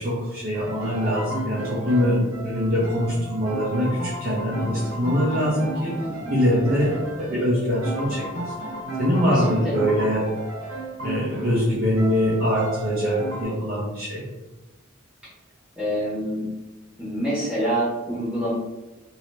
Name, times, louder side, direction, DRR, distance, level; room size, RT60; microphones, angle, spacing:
voice 1, 0.0-5.9 6.3-8.4 9.0-10.2 11.0-14.2, equal, 45° right, -9 dB, 0.7 m, -23 dB
sound 1, 0.5-13.4, right 1 dB, 75° right, 1.1 m, -34 dB
voice 2, 6.0-6.3 9.3-9.7 15.8-16.5 17.0-18.5, right 1 dB, 5° right, -10 dB, 1.0 m, -27 dB
2.8 x 2.7 x 3.2 m, 1.1 s
head